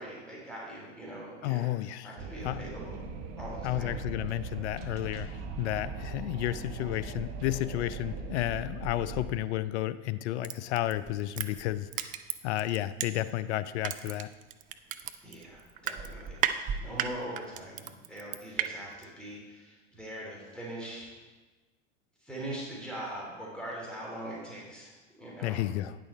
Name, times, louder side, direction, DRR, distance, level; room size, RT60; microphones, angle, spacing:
voice 1, 0.0-1.7 2.0-3.0 3.4-4.0 15.2-21.1 22.2-25.6, right 1 dB, ahead, -5 dB, 3.0 m, -42 dB
voice 2, 1.4-2.2 2.4-2.6 3.6-12.2 12.4-14.3 25.4-26.0, left 14 dB, 65° left, 14 dB, 0.5 m, -32 dB
Wind, 2.2-9.4, right 4 dB, 45° right, 1.0 m, -40 dB
Crushing, 10.4-13.4 13.8-18.7 19.0-19.1, right 10 dB, 25° right, 0.3 m, -34 dB
9.0 x 6.3 x 4.3 m, 1.2 s
hypercardioid pair, 90°, 37 cm